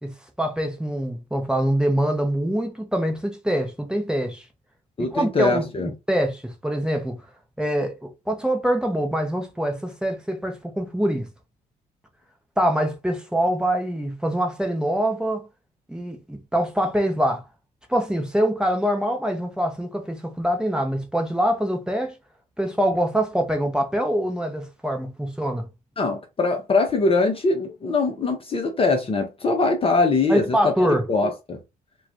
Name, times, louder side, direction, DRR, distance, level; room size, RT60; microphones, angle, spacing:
voice 1, 0.0-4.4 5.0-5.7 6.1-7.2 7.6-11.3 12.6-15.4 15.9-17.4 17.9-22.1 22.6-25.7 30.3-31.0, equal, 5° right, 0.9 m, -24 dB
voice 2, 5.0-5.9 26.0-30.7 31.1-31.6, left 3 dB, 30° left, 0.7 m, -22 dB
2.3 x 2.3 x 3.5 m
figure-of-eight pair, 45°, 20 cm